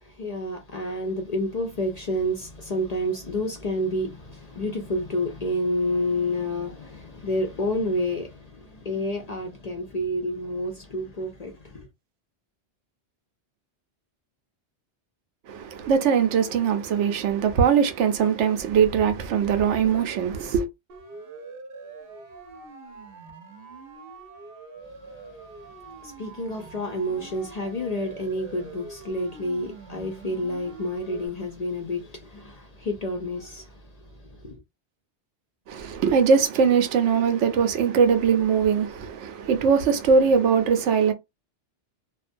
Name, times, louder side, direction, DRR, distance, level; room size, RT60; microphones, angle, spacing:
voice 1, 0.0-11.9 25.0-25.4 26.0-34.5, left 1 dB, 50° left, 0.5 m, -29 dB
voice 2, 15.5-20.7 35.7-41.1, right 6 dB, 90° right, 0.9 m, -21 dB
Siren, 20.9-31.3, right 3 dB, 60° right, 0.8 m, -44 dB
2.4 x 2.1 x 2.5 m
omnidirectional pair, 1.2 m